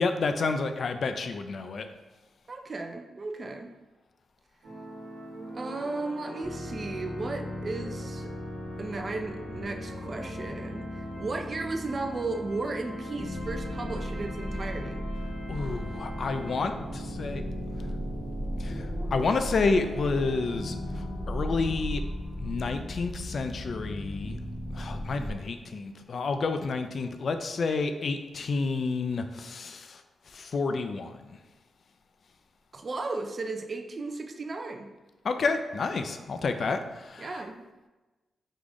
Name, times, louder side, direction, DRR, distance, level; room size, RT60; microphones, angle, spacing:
voice 1, 0.0-1.9 15.5-17.4 18.6-18.9 19.1-20.8 21.3-22.0 22.4-24.4 24.7-30.0 30.3-31.4 35.2-37.4, left 4 dB, 65° left, 8 dB, 0.3 m, -30 dB
voice 2, 2.5-3.7 5.5-8.3 8.8-15.0 32.7-34.9 37.2-37.7, right 3 dB, 50° right, 5 dB, 0.4 m, -35 dB
sound 1, 4.6-21.7, equal, 85° right, 1.1 m, -41 dB
sound 2, 6.4-25.3, left 1 dB, 20° left, 0.7 m, -37 dB
3.6 x 2.4 x 3.5 m, 1.1 s
supercardioid pair, 45°, 0 cm